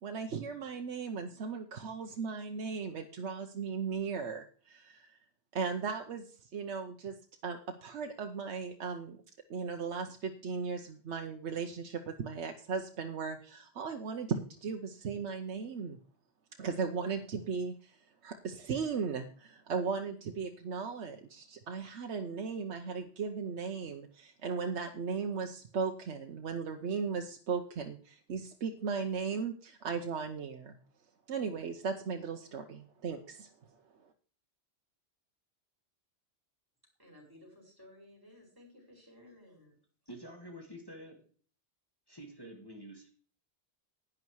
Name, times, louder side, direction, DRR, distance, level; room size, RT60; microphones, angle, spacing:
voice 1, 0.0-5.1 5.5-9.2 9.5-16.0 16.6-30.8 31.3-33.5 34.0-34.1, right 5 dB, 90° right, 5 dB, 1.1 m, -37 dB
voice 2, 37.0-39.8, left 1 dB, 20° right, -1 dB, 5.3 m, -57 dB
voice 3, 40.1-41.3 42.1-43.1, equal, 20° left, 2 dB, 1.9 m, -48 dB
11.0 x 9.6 x 4.7 m, 0.44 s
omnidirectional pair, 1.1 m